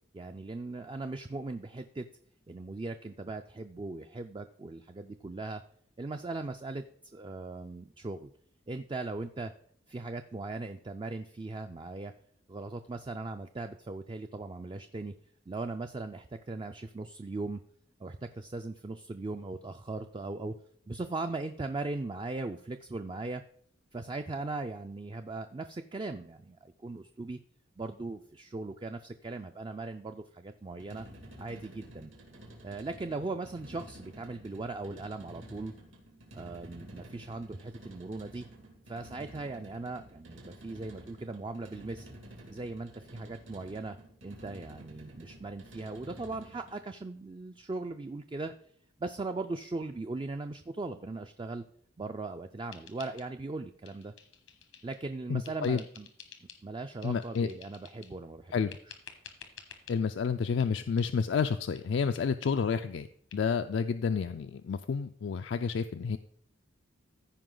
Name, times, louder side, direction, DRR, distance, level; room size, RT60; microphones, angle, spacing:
voice 1, 0.1-2.1 2.5-5.6 6.0-6.8 7.1-8.3 8.7-9.5 9.9-12.1 12.5-15.1 15.5-17.6 18.0-20.5 20.9-23.4 23.9-27.4 27.8-31.1 31.4-32.1 32.6-35.7 36.3-38.5 38.9-42.1 42.5-44.0 44.2-48.5 49.0-51.6 52.0-54.1 54.8-56.1 56.6-58.7, right 3 dB, 25° right, 7 dB, 0.3 m, -39 dB
sound 1, 30.7-46.9, equal, 80° right, 2.2 m, -51 dB
sound 2, 52.7-53.6 53.8-55.0 55.4-56.6 57.0-58.2 58.7-60.0 60.6-60.7 61.0-61.1 61.4-61.5 61.7-61.8 62.1-62.3 62.5-62.6 62.9-63.0 63.3-63.4, left 8 dB, 90° left, 1.3 m, -52 dB
voice 2, 55.3-55.8 57.0-57.5 58.5-58.7 59.9-63.1 63.3-66.2, left 5 dB, 65° left, 9 dB, 0.3 m, -30 dB
14.5 x 5.0 x 3.8 m, 0.63 s
head